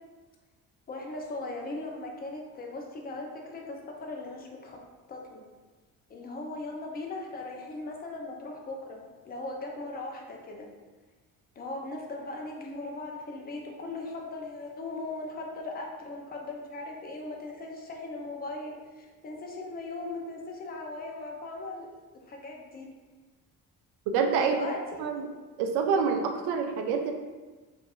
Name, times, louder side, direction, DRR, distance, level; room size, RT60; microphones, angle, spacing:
voice 1, 0.9-4.8 5.1-5.4 6.1-10.7 11.6-22.0 22.3-22.9 24.4-25.2, left 2 dB, 20° left, 0 dB, 0.5 m, -38 dB
voice 2, 24.1-24.6 25.0-25.2 25.6-27.1, right 6 dB, 65° right, 4 dB, 0.5 m, -26 dB
2.6 x 2.5 x 2.3 m, 1.3 s
hypercardioid pair, 50°, 42 cm